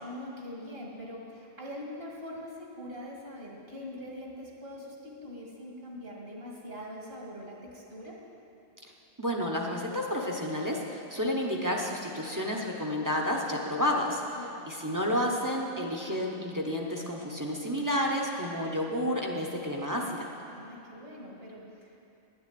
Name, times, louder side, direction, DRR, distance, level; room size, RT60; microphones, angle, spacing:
voice 1, 0.0-8.2 13.5-13.6 14.4-14.7 20.5-22.0, left 1 dB, 65° right, -3 dB, 2.2 m, -43 dB
voice 2, 9.2-14.2 14.7-20.3, equal, 20° right, -1 dB, 0.9 m, -30 dB
11.0 x 7.0 x 8.5 m, 2.7 s
omnidirectional pair, 1.1 m